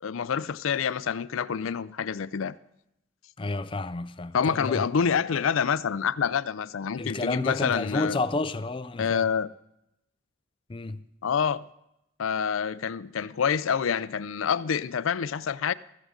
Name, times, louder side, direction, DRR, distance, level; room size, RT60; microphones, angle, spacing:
voice 1, 0.0-2.5 4.3-8.2 9.0-9.5 11.2-11.6 12.2-15.7, left 7 dB, 80° left, 0.4 m, -27 dB
voice 2, 3.4-4.8 7.0-9.3 10.7-11.1, left 2 dB, 25° left, 0.4 m, -30 dB
15.0 x 14.0 x 3.8 m
head